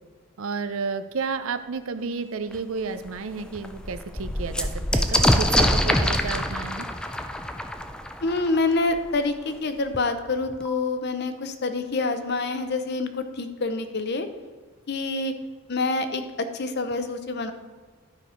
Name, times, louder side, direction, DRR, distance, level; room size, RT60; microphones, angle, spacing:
voice 1, 0.4-6.9, right 4 dB, 70° right, 11 dB, 0.5 m, -31 dB
sound 1, 2.5-2.6 3.1-3.2 3.4-9.0 9.9-10.0 10.3-10.9, left 1 dB, 5° left, 0.3 m, -25 dB
voice 2, 8.2-14.3 14.9-15.3 15.7-17.5, left 3 dB, 50° left, 9 dB, 0.7 m, -27 dB
11.5 x 4.7 x 5.0 m, 1.5 s
head